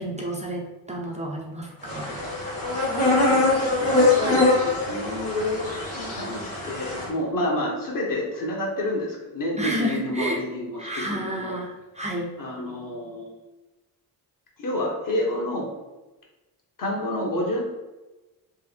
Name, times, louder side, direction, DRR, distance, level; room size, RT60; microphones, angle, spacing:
voice 1, 0.0-2.1 9.6-10.4 10.8-12.4, equal, 15° right, -2 dB, 0.6 m, -30 dB
sound 1, 1.8-7.1, left 2 dB, 85° left, 1.4 m, -23 dB
voice 2, 3.0-11.5 12.4-13.3 14.6-15.7 16.8-17.6, left 1 dB, 50° left, -2 dB, 1.1 m, -29 dB
3.4 x 2.1 x 3.4 m, 1.1 s
supercardioid pair, 70°, 41 cm